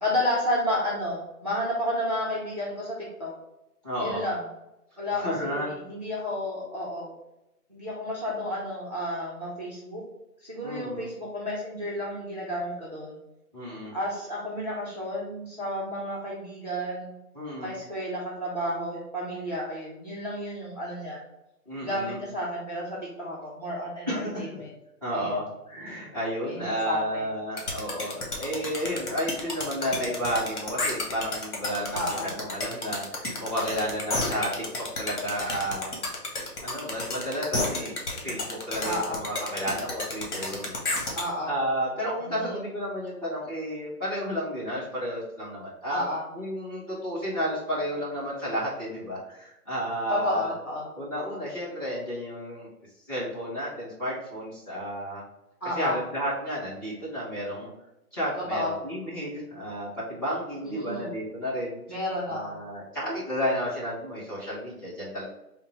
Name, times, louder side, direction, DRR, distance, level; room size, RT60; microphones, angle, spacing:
voice 1, 0.0-3.3 4.0-4.4 5.0-7.1 7.7-10.0 10.4-13.2 13.9-17.1 17.6-21.2 21.8-24.7 25.1-25.4 26.5-27.3 31.9-32.3 38.8-39.2 41.1-41.5 42.2-42.7 45.9-46.2 50.1-50.9 55.6-56.0 58.4-58.8 60.8-61.1 61.9-62.6, left 1 dB, 30° right, -6 dB, 0.5 m, -31 dB
voice 2, 3.8-4.3 5.1-5.7 10.6-11.1 13.5-13.9 17.3-17.7 21.6-22.2 24.1-24.6 25.0-36.0 36.3-40.9 41.5-46.0 46.3-50.5 51.0-52.7 53.1-55.2 55.7-57.7 58.1-62.0 62.3-65.2, equal, 15° left, -10 dB, 0.9 m, -32 dB
sound 1, 27.6-41.2, left 2 dB, 70° left, 1.5 m, -31 dB
3.7 x 2.1 x 4.3 m, 0.91 s
hypercardioid pair, 165°, 46 cm